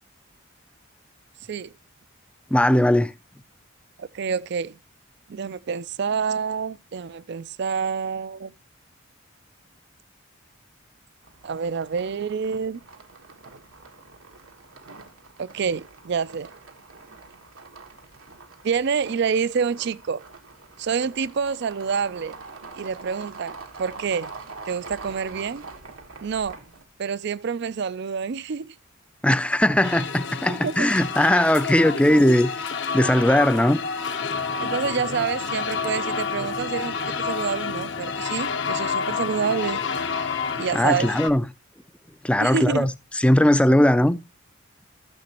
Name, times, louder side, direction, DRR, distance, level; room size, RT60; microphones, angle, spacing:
voice 1, 2.5-3.1 29.2-32.5 32.9-33.8 40.7-41.4 42.2-42.9 43.2-44.2, left 1 dB, 5° left, 0.4 m, -19 dB
voice 2, 4.0-4.8 5.3-8.5 11.4-12.8 15.4-16.5 18.6-20.2 20.8-22.4 22.8-24.3 24.7-25.6 26.2-26.6 27.0-28.7 30.5-30.9 34.6-39.8 40.5-41.1 42.4-42.9, right 6 dB, 55° right, 0.4 m, -27 dB
sound 1, 11.2-26.8, right 4 dB, 85° right, 1.4 m, -44 dB
sound 2, 29.8-41.3, left 5 dB, 60° left, 0.9 m, -29 dB
13.5 x 6.9 x 2.9 m
head